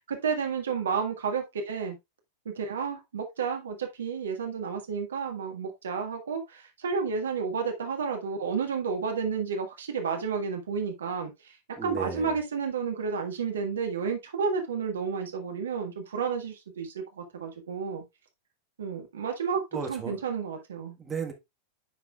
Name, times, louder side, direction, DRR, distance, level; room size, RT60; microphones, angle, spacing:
voice 1, 0.1-1.9 2.4-11.6 11.8-18.0 18.8-19.6 19.9-20.9, right 5 dB, 65° right, 1.7 m, -31 dB
voice 2, 11.8-12.4 19.7-20.2 21.0-21.3, right 6 dB, 15° right, 1.6 m, -34 dB
9.7 x 5.9 x 2.4 m
figure-of-eight pair, 90°, 0 cm